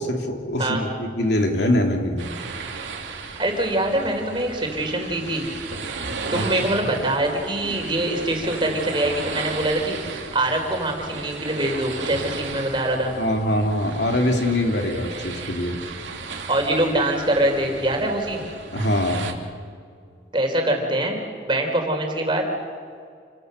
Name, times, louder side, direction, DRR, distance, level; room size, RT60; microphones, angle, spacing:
voice 1, 0.0-2.4 6.3-6.7 7.0-7.2 13.2-15.8 18.7-19.4, left 1 dB, 65° left, 2 dB, 3.0 m, -23 dB
sound 1, 2.2-19.3, right 4 dB, 90° right, 2.9 m, -35 dB
voice 2, 3.4-5.5 6.3-10.0 10.3-13.1 16.5-18.4 20.3-22.4, right 1 dB, 25° right, 2 dB, 4.1 m, -23 dB
29.0 x 24.0 x 6.8 m, 2.2 s
head